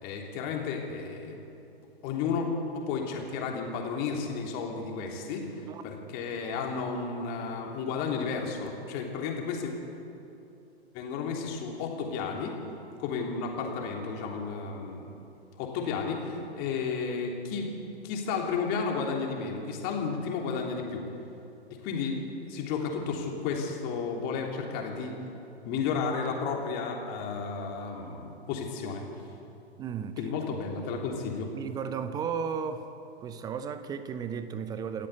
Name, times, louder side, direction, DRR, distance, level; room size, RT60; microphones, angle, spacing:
voice 1, 0.0-1.4 2.0-2.5 2.7-5.5 5.8-9.7 10.9-12.6 13.0-15.0 15.6-17.7 18.0-21.0 21.8-22.2 22.5-25.2 25.6-29.0 30.2-31.5, left 5 dB, 30° left, 1 dB, 3.4 m, -32 dB
voice 2, 29.8-30.1 31.5-32.9 33.2-35.1, right 7 dB, 10° right, 11 dB, 0.7 m, -34 dB
27.5 x 13.5 x 8.3 m, 2.8 s
figure-of-eight pair, 115°, 33 cm